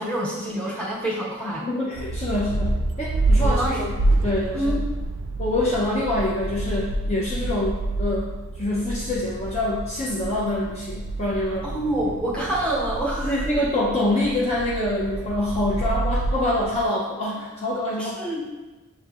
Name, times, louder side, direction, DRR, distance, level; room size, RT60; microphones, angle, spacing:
voice 1, 0.0-1.7 3.4-3.8 4.5-4.8 11.6-13.4 18.0-18.4, right 1 dB, 5° left, -7 dB, 1.0 m, -27 dB
voice 2, 1.4-4.8 5.4-11.7 13.2-18.2, left 1 dB, 30° left, -5 dB, 0.5 m, -26 dB
sound 1, 1.9-16.8, right 2 dB, 65° right, 0.4 m, -28 dB
6.8 x 2.9 x 2.3 m, 1.2 s
head